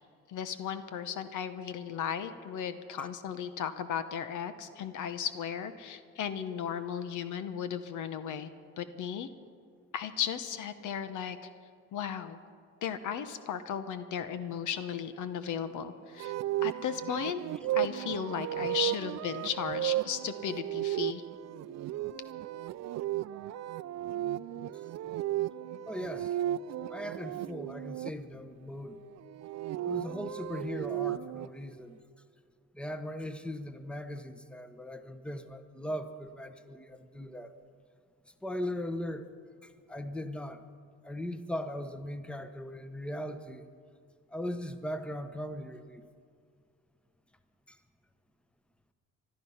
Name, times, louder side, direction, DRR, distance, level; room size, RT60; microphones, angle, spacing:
voice 1, 0.3-8.5 8.8-9.3 9.9-11.4 11.9-12.4 12.8-16.4 16.6-17.4 17.7-21.2, left 8 dB, 80° left, 11 dB, 1.0 m, -35 dB
sound 1, 16.2-28.1 29.2-31.5, right 13 dB, 60° right, 0.5 m, -34 dB
voice 2, 25.9-26.4 26.9-29.0 29.8-32.0 32.7-37.5 38.4-39.3 39.6-40.6 41.0-43.7 44.3-46.0 47.7-47.8, equal, 5° left, 10 dB, 1.0 m, -39 dB
20.5 x 12.5 x 5.7 m, 2.3 s
cardioid pair, 90°, 30 cm